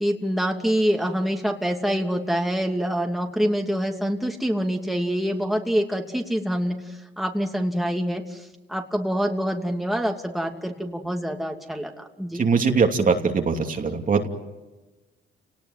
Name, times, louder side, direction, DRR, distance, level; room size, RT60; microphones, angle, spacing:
voice 1, 0.0-12.4, equal, ahead, 2 dB, 2.8 m, -26 dB
voice 2, 12.3-14.3, right 5 dB, 45° right, 3 dB, 2.8 m, -21 dB
30.0 x 19.0 x 9.3 m, 1.2 s
cardioid pair, 90°, 20 cm